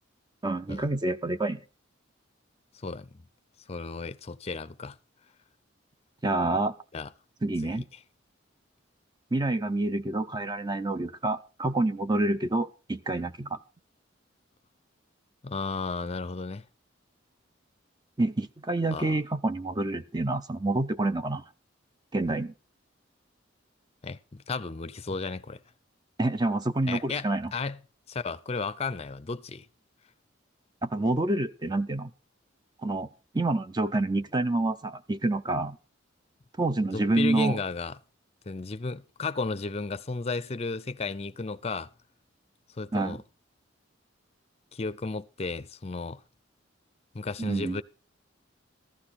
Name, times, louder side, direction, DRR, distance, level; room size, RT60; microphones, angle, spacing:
voice 1, 0.4-1.6 6.2-6.7 7.4-7.9 9.3-13.6 18.2-21.4 22.1-22.5 26.2-27.5 30.8-32.1 32.8-33.1 33.3-35.8 36.6-37.6 42.9-43.2 47.4-47.8, right 2 dB, 20° right, 0.6 m, -27 dB
voice 2, 3.7-5.0 6.9-7.1 7.6-7.8 15.4-16.6 18.9-19.2 24.0-25.6 26.9-27.8 28.1-29.7 36.9-37.9 38.5-41.9 42.8-43.2 44.7-46.2 47.1-47.8, left 4 dB, 30° left, 0.5 m, -34 dB
14.5 x 12.0 x 4.2 m
head